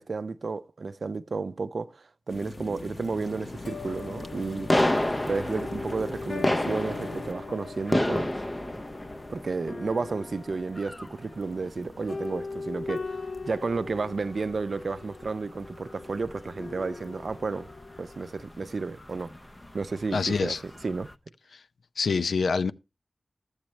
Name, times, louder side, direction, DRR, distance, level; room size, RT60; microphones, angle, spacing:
voice 1, 0.0-4.7 5.2-8.3 9.3-17.7 18.0-19.3 19.7-20.6 20.8-21.1, right 4 dB, 65° right, 0.5 m, -32 dB
sound 1, 2.3-7.3, left 2 dB, 45° left, 0.9 m, -41 dB
sound 2, 3.2-18.3, left 3 dB, 65° left, 1.3 m, -41 dB
sound 3, 3.2-21.1, left 1 dB, 20° left, 0.5 m, -34 dB
voice 2, 20.1-20.6 21.5-21.6 22.0-22.7, left 4 dB, 90° left, 0.4 m, -26 dB
12.0 x 8.0 x 3.1 m
wide cardioid pair, 80°, 0 cm